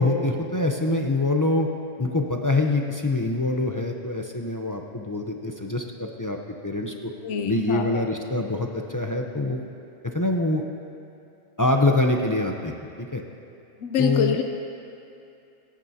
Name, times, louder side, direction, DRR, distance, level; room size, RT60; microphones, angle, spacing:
voice 1, 0.0-1.7 2.0-6.4 6.6-7.1 7.5-9.6 10.0-10.6 11.6-13.2 14.0-14.4, left 2 dB, 25° left, 2 dB, 0.4 m, -24 dB
voice 2, 7.2-8.1 13.8-14.4, left 6 dB, 75° left, 5 dB, 0.9 m, -26 dB
24.5 x 9.0 x 2.8 m, 2.6 s
omnidirectional pair, 1.3 m